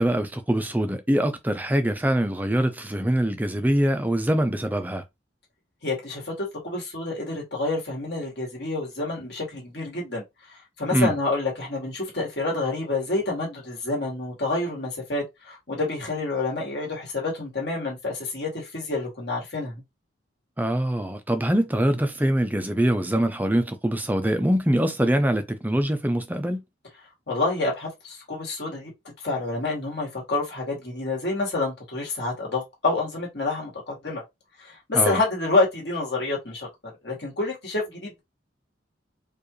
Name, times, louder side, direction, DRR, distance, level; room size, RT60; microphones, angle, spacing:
voice 1, 0.0-5.0 10.9-11.1 20.6-26.6 34.9-35.2, right 1 dB, 10° right, 0.5 m, -23 dB
voice 2, 5.8-10.2 10.8-19.7 27.3-28.9 29.2-34.2 34.6-36.7 37.0-38.2, left 2 dB, 60° left, 2.0 m, -28 dB
4.6 x 2.5 x 3.1 m
head